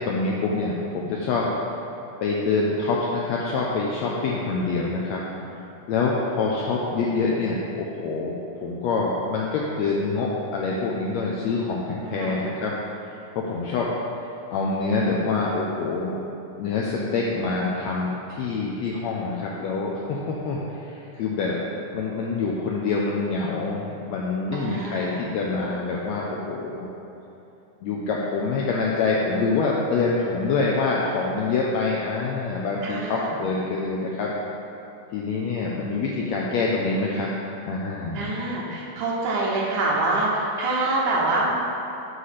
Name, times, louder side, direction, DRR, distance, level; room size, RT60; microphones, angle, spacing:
voice 1, 0.1-1.5 2.2-5.2 5.9-8.3 8.6-12.7 13.3-13.9 14.5-16.2 16.6-21.6 21.9-26.9 27.8-34.3 35.1-37.3 37.7-38.3, left 3 dB, 80° left, -3 dB, 1.5 m, -26 dB
voice 2, 12.1-12.4 24.5-25.2 32.8-33.4 38.1-41.5, right 2 dB, 75° right, -3 dB, 2.3 m, -26 dB
7.9 x 3.2 x 5.8 m, 2.9 s
omnidirectional pair, 3.7 m